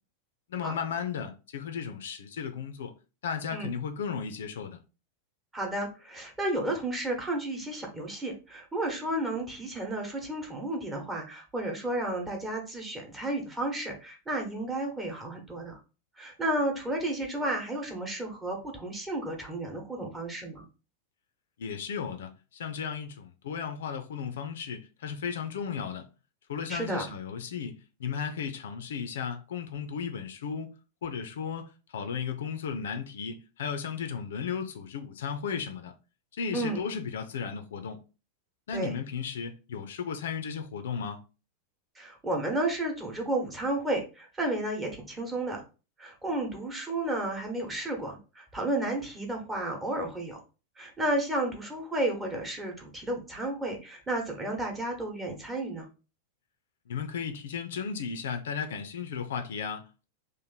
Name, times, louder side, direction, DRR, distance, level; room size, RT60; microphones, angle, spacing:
voice 1, 0.5-2.9 3.2-4.8 21.6-26.1 26.5-30.7 31.0-35.9 36.3-38.0 38.7-41.2 56.9-60.0, left 6 dB, 60° left, 0.5 m, -35 dB
voice 2, 5.5-15.8 16.2-20.7 26.7-27.1 36.5-36.8 38.7-38.9 41.9-45.6 46.0-50.4 50.8-55.9, right 1 dB, 15° right, 1.0 m, -32 dB
3.0 x 2.5 x 3.9 m
figure-of-eight pair, 90°, 0 cm